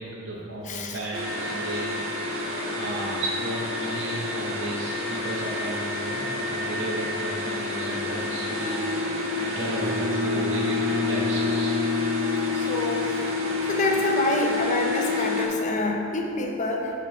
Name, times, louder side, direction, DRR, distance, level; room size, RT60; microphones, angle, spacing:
voice 1, 0.0-8.8 9.4-11.8, right 1 dB, 60° right, -4 dB, 0.7 m, -34 dB
voice 2, 0.6-1.0 12.5-13.3 13.7-16.9, left 2 dB, 35° left, 1 dB, 0.6 m, -27 dB
sound 1, 1.1-15.5, left 3 dB, 85° right, 1.1 m, -28 dB
Bowed string instrument, 9.5-13.4, right 1 dB, 60° left, 1.3 m, -31 dB
7.6 x 4.4 x 3.1 m, 2.7 s
head